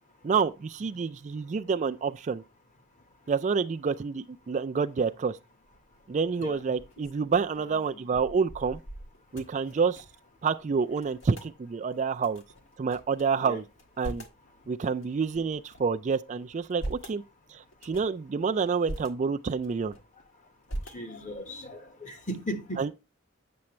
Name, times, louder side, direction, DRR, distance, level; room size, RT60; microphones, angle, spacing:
voice 1, 0.2-2.4 3.3-5.4 6.1-8.8 9.3-10.0 10.4-12.4 12.8-13.6 14.0-14.2 14.7-17.2 17.5-19.9 22.8-22.9, right 5 dB, 35° right, 0.3 m, -28 dB
sound 1, 5.6-6.0 6.5-10.3 10.6-10.7 10.9-11.5 12.2-13.2 13.7-14.4 15.0-16.0 16.5-17.2 17.7-18.2 18.7-19.1 19.6-20.2 20.7-21.4, right 1 dB, 65° left, 1.6 m, -42 dB
voice 2, 20.9-22.8, equal, 40° left, 1.4 m, -37 dB
8.7 x 6.9 x 3.1 m
head